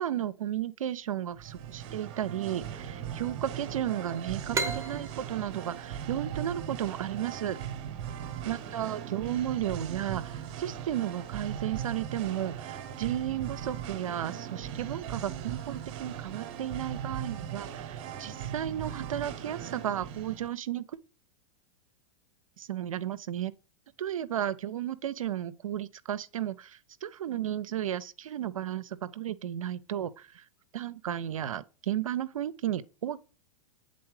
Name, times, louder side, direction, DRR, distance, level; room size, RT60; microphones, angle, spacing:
voice 1, 0.0-7.6 8.4-20.8 22.6-23.5 24.0-30.4 30.7-33.2, right 11 dB, 85° right, 0.5 m, -34 dB
Singing, 1.3-20.5, right 9 dB, 55° right, 1.0 m, -39 dB
sound 1, 4.5-7.9, right 3 dB, 15° right, 0.9 m, -36 dB
8.5 x 4.0 x 3.2 m
hypercardioid pair, 105°, 17 cm